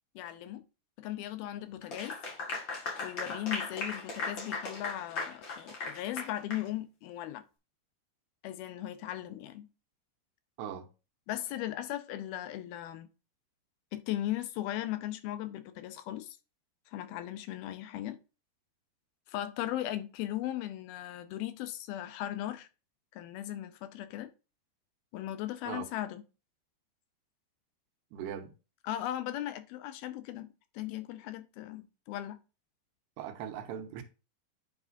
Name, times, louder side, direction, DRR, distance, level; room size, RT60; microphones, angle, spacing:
voice 1, 0.2-0.6 1.0-2.2 3.0-7.4 8.4-9.7 11.3-13.1 13.9-16.4 16.9-18.2 19.3-22.7 23.1-24.3 25.1-26.2 28.8-32.4, left 13 dB, 75° left, 2.5 m, -37 dB
Clapping / Applause, 1.8-6.7, left 3 dB, 45° left, 1.7 m, -37 dB
voice 2, 28.1-28.5 33.2-34.0, right 9 dB, 85° right, 3.0 m, -39 dB
9.5 x 6.0 x 2.6 m
omnidirectional pair, 4.7 m